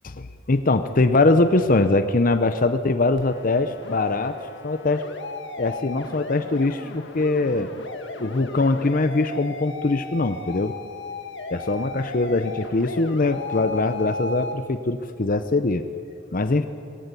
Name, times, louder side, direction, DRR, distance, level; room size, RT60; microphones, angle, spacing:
voice 1, 0.0-4.4 4.6-5.1 5.6-7.7 8.2-10.7 11.5-15.8 16.3-16.7, left 2 dB, 45° left, 10 dB, 0.7 m, -22 dB
sound 1, 3.2-14.5, left 2 dB, 65° left, 1.5 m, -36 dB
21.0 x 16.0 x 8.3 m, 2.6 s
head